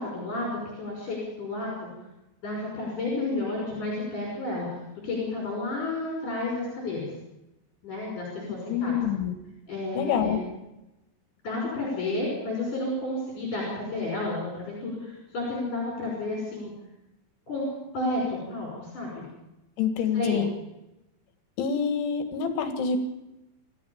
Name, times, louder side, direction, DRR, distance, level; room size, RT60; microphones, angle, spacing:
voice 1, 0.0-1.9 2.4-4.7 5.0-7.1 7.8-8.9 9.7-10.5 11.4-16.7 17.5-17.7 17.9-19.2 20.1-20.4, left 2 dB, 40° left, -2 dB, 6.9 m, -31 dB
voice 2, 8.7-9.4 9.9-10.4 19.8-20.5 21.6-23.0, left 7 dB, 70° left, 8 dB, 4.0 m, -26 dB
27.5 x 14.5 x 7.2 m, 0.94 s
omnidirectional pair, 5.8 m